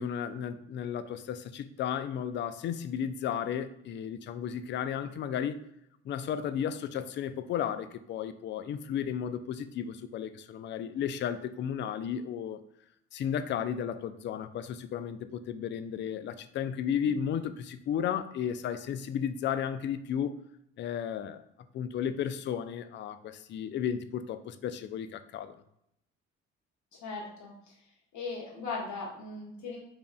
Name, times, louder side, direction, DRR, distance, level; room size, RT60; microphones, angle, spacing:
voice 1, 0.0-5.6 6.0-12.6 13.1-20.4 20.8-21.4 21.7-25.6, left 8 dB, 35° left, 11 dB, 0.4 m, -34 dB
voice 2, 26.9-27.8 28.1-29.8, left 3 dB, 55° left, -3 dB, 1.6 m, -38 dB
4.9 x 3.5 x 2.3 m, 0.76 s
figure-of-eight pair, 40°, 36 cm